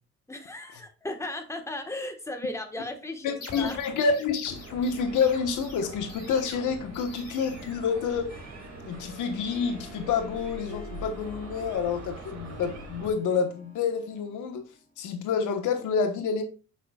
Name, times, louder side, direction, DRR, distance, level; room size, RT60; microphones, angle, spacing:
voice 1, 0.3-3.8, left 1 dB, 10° left, 1.4 m, -36 dB
voice 2, 3.2-8.3 8.9-14.6 15.0-16.4, left 5 dB, 80° left, 1.3 m, -28 dB
sound 1, 3.4-8.8, left 3 dB, 55° left, 2.7 m, -46 dB
sound 2, 4.4-13.1, right 2 dB, 60° right, 2.3 m, -43 dB
Harp, 8.3-15.2, left 4 dB, 30° left, 2.3 m, -49 dB
8.5 x 5.9 x 2.4 m
cardioid pair, 90°, 30 cm